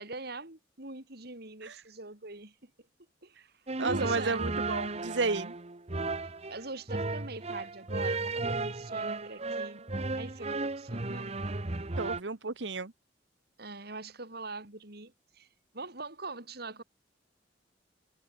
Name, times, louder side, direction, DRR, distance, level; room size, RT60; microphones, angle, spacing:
voice 1, 0.0-2.7 3.2-3.5 3.8-4.4 6.5-9.9 10.1-11.4 13.6-15.5 15.7-16.8, right 3 dB, 60° right, 4.0 m, -43 dB
sound 1, 3.7-12.2, right 3 dB, 35° right, 1.2 m, -34 dB
voice 2, 3.8-5.5 12.0-12.9, right 3 dB, 80° right, 1.3 m, -32 dB
head